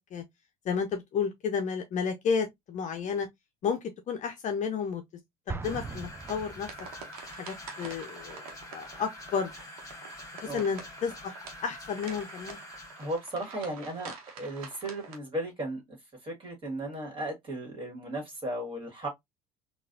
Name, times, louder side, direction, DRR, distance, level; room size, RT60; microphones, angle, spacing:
voice 1, 0.6-3.3 3.6-3.8 4.1-5.0 5.5-6.7 7.4-8.4 8.7-9.5 10.3-12.6, left 6 dB, 40° left, 0.6 m, -32 dB
Explosion, 5.5-7.2, right 4 dB, 10° right, 0.5 m, -40 dB
sound 1, 5.6-13.2, left 1 dB, 20° left, 1.6 m, -46 dB
sound 2, 6.1-15.2, right 5 dB, 75° right, 1.0 m, -47 dB
voice 2, 13.0-15.8 16.2-19.1, right 1 dB, 30° right, 1.8 m, -35 dB
3.9 x 2.4 x 2.5 m
hypercardioid pair, 65°, 19 cm